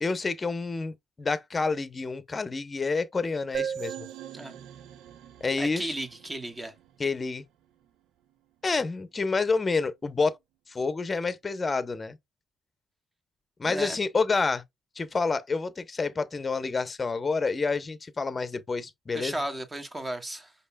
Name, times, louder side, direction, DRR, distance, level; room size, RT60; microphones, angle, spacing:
voice 1, 0.0-4.1 5.4-5.9 7.0-7.4 8.6-10.4 10.7-12.2 13.6-14.6 15.0-19.4, left 4 dB, 30° left, 0.7 m, -28 dB
sound 1, 3.5-7.1, right 9 dB, 85° right, 0.5 m, -38 dB
voice 2, 5.6-6.7 13.6-14.0 19.1-20.5, right 1 dB, 20° right, 1.3 m, -34 dB
5.4 x 4.1 x 2.2 m
cardioid pair, 90°, 0 cm